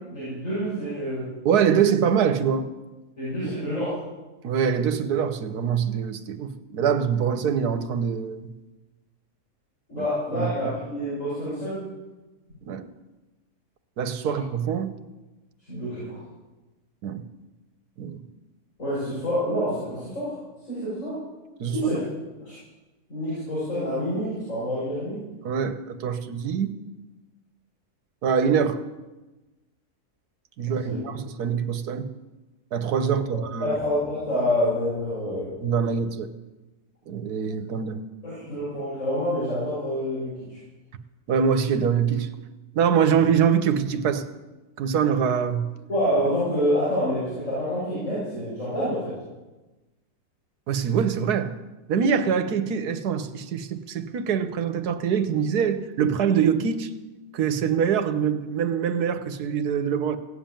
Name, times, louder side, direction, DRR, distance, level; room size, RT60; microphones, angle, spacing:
voice 1, 0.0-1.3 3.2-4.0 9.9-11.9 14.2-14.4 15.7-16.2 18.8-20.4 20.7-21.2 21.7-22.1 22.4-22.6 23.1-25.2 30.6-31.0 33.3-35.6 38.2-40.6 45.9-49.2, equal, 55° left, 7.0 m, -27 dB
voice 2, 1.4-2.7 3.4-3.5 4.4-8.5 10.0-10.1 10.3-10.5 12.6-12.9 14.0-14.9 17.0-17.2 18.0-18.2 21.6-21.7 25.4-26.8 28.2-28.8 30.6-32.1 32.7-33.7 35.6-36.3 37.1-38.0 41.3-42.3 42.7-44.2 44.8-45.7 50.7-51.5 51.9-56.9 57.3-60.2, right 7 dB, 80° right, 1.5 m, -24 dB
17.0 x 7.4 x 8.9 m
omnidirectional pair, 1.6 m